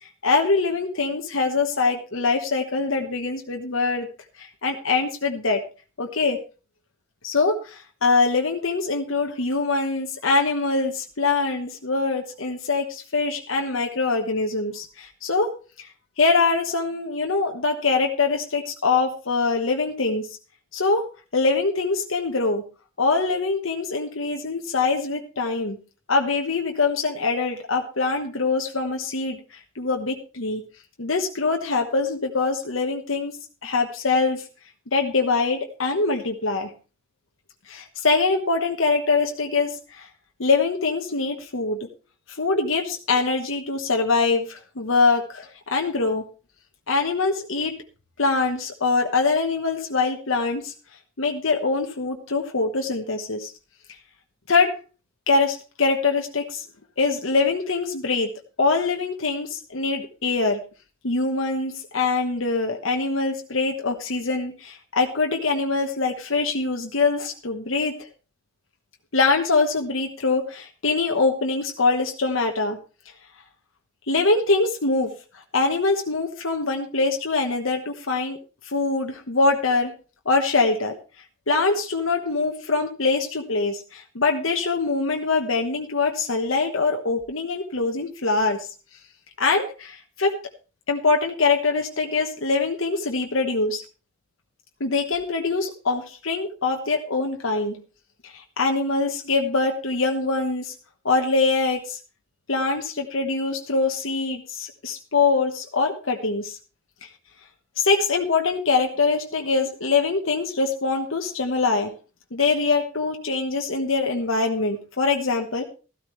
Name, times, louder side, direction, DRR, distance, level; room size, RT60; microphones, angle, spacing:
voice 1, 0.2-4.1 4.4-5.6 6.0-6.4 7.2-15.5 15.8-15.9 16.2-20.3 20.7-21.1 21.3-22.6 23.0-25.8 26.1-29.4 29.8-30.6 31.0-33.3 33.6-34.4 34.9-36.7 37.7-40.1 40.4-41.8 42.4-46.2 46.9-47.8 48.2-50.7 51.2-53.5 54.5-54.8 55.3-56.6 57.0-58.3 58.6-60.6 61.0-68.1 69.1-72.8 74.1-75.1 75.5-78.4 78.6-79.9 80.2-80.9 81.5-88.7 89.4-90.4 90.9-93.8 94.8-97.8 98.2-100.7 101.0-102.0 102.5-106.6 107.8-111.9 112.3-115.6, left 3 dB, 80° left, 3 dB, 1.2 m, -23 dB
13.5 x 13.0 x 3.2 m, 0.34 s
head